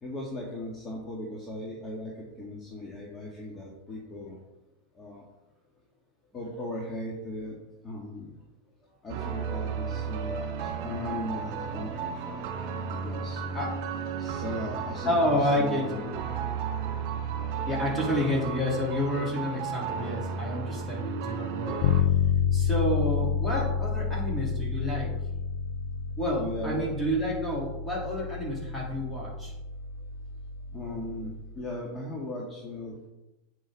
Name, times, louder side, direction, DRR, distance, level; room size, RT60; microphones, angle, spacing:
voice 1, 0.0-4.4 5.0-5.2 6.3-7.6 7.8-8.4 9.0-12.4 12.9-13.8 14.2-16.0 26.4-26.9 30.7-33.1, left 1 dB, 25° left, -2 dB, 2.0 m, -38 dB
sound 1, 9.1-22.0, right 6 dB, 60° right, 2.2 m, -34 dB
voice 2, 13.5-14.0 15.0-16.2 17.5-21.9 22.5-25.1 26.2-29.5, left 1 dB, 5° left, -3 dB, 3.9 m, -29 dB
Bass guitar, 21.8-31.6, left 7 dB, 60° left, 0.5 m, -30 dB
9.2 x 9.1 x 4.1 m, 0.94 s
supercardioid pair, 135°, 0 cm